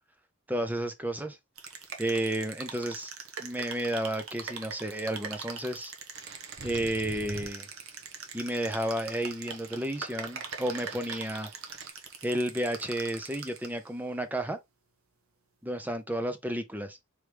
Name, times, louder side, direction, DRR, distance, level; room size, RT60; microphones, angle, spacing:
voice 1, 0.5-1.4 2.0-3.1 3.4-5.9 6.6-7.7 8.3-11.5 12.2-14.6 15.6-17.0, right 1 dB, 5° right, 0.5 m, -32 dB
sound 1, 1.6-13.9, right 5 dB, 70° right, 1.1 m, -43 dB
sound 2, 6.1-11.9, right 3 dB, 50° right, 0.9 m, -47 dB
4.6 x 3.2 x 3.3 m
head